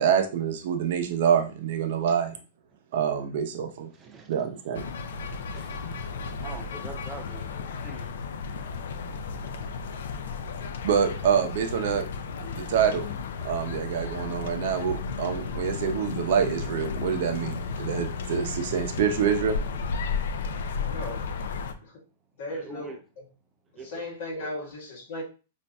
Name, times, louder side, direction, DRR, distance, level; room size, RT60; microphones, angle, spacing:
voice 1, 0.0-2.3 2.9-3.9 4.3-4.9 10.8-12.1 12.5-13.0 13.4-19.6, right 8 dB, 60° right, 0.6 m, -26 dB
voice 2, 4.0-4.3 5.5-6.0 6.4-8.2 22.5-23.0 23.8-24.0 24.4-24.5, right 3 dB, 20° right, 0.5 m, -44 dB
sound 1, 4.7-21.7, left 5 dB, 75° left, 0.4 m, -33 dB
voice 3, 20.8-21.3 21.8-22.0 22.4-23.3 23.7-25.2, left 1 dB, 60° left, 1.4 m, -37 dB
5.3 x 2.5 x 2.2 m
hypercardioid pair, 145°, 0 cm